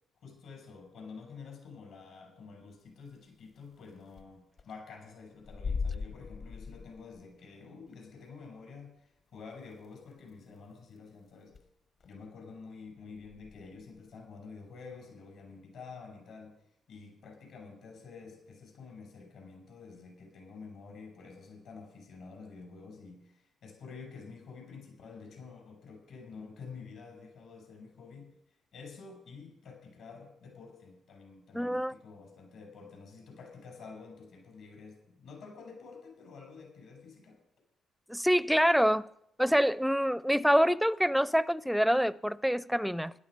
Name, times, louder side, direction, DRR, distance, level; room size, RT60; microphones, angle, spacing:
voice 1, 0.2-11.6 12.0-16.6 16.9-28.3 28.7-37.4, left 4 dB, 75° left, 6.7 m, -49 dB
sound 1, 3.4-3.5 3.8-3.9 4.1-4.3 4.6-4.8 5.4-7.3 7.9-8.0 8.8-8.9 9.8-9.9 10.2-10.3 10.7-11.0 11.5-11.7 12.0-12.2 13.1-14.1, left 5 dB, 55° left, 1.3 m, -39 dB
voice 2, 31.5-31.9 38.1-39.0 39.4-43.1, equal, ahead, 0.5 m, -26 dB
16.0 x 12.5 x 5.1 m
cardioid pair, 90°, 0 cm